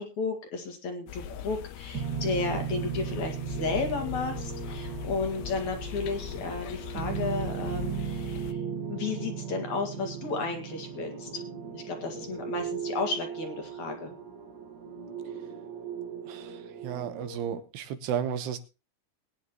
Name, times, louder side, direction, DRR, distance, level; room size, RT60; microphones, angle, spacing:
voice 1, 0.0-8.6 8.9-11.4 11.7-14.1, left 4 dB, 55° left, 4 dB, 2.9 m, -33 dB
sound 1, 1.1-8.5, left 11 dB, 85° left, 2.8 m, -40 dB
sound 2, 1.9-17.6, right 8 dB, 55° right, 1.1 m, -37 dB
voice 2, 16.3-18.6, right 8 dB, 85° right, 9 dB, 3.2 m, -33 dB
21.5 x 9.8 x 3.0 m, 0.30 s
omnidirectional pair, 4.6 m